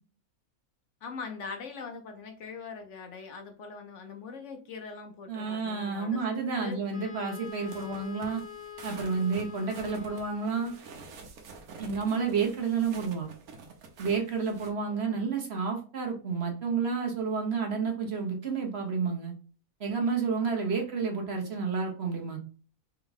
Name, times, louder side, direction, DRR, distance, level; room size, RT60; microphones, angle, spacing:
voice 1, 1.0-6.2 6.6-6.8 14.9-15.2, left 5 dB, 65° left, 5 dB, 0.9 m, -42 dB
voice 2, 5.3-8.4 8.8-10.7 11.8-13.3 14.0-19.3 19.8-22.4, right 5 dB, 50° right, 2 dB, 1.0 m, -30 dB
Wind instrument woodwind instrument, 6.9-10.9, left 8 dB, 40° left, 2.0 m, -45 dB
sound 1, 7.4-14.7, right 4 dB, 75° right, 1.3 m, -48 dB
3.7 x 3.5 x 3.4 m, 0.38 s
omnidirectional pair, 1.6 m